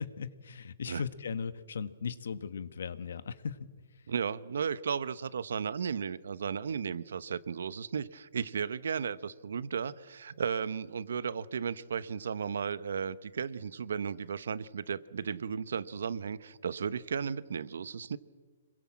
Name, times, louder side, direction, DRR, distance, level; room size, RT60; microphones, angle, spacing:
voice 1, 0.0-3.7, left 6 dB, 70° left, 13 dB, 1.4 m, -38 dB
voice 2, 4.1-18.2, right 6 dB, 70° right, 16 dB, 1.0 m, -35 dB
27.0 x 22.0 x 7.5 m, 1.5 s
hypercardioid pair, 170°, 0 cm